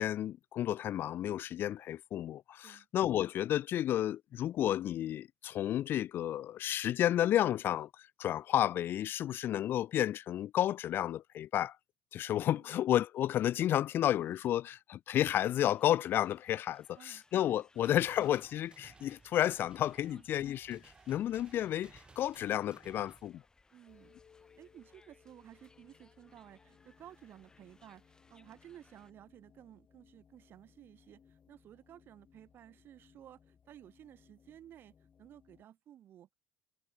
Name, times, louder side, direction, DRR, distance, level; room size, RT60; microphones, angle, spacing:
voice 1, 0.0-11.8 12.1-23.4, left 12 dB, 50° left, 0.4 m, -31 dB
sound 1, 15.1-29.1, left 3 dB, 15° left, 2.5 m, -68 dB
sound 2, 17.7-23.3, right 4 dB, 20° right, 2.5 m, -59 dB
voice 2, 23.7-24.2 24.6-36.3, right 11 dB, 50° right, 3.3 m, -55 dB
sound 3, 23.9-35.6, left 7 dB, 35° left, 2.6 m, -65 dB
cardioid pair, 110°, 5 cm